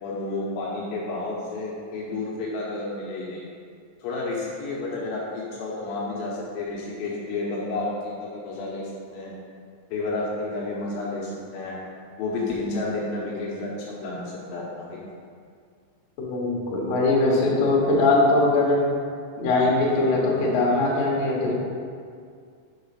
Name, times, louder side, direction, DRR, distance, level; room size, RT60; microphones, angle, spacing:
voice 1, 0.0-3.5 4.0-9.4 9.9-11.8 12.2-15.0, left 2 dB, 90° left, -4 dB, 2.0 m, -31 dB
voice 2, 16.2-18.9 19.4-21.5, left 2 dB, 70° left, -4 dB, 2.2 m, -21 dB
6.8 x 4.0 x 5.6 m, 2.2 s
omnidirectional pair, 5.4 m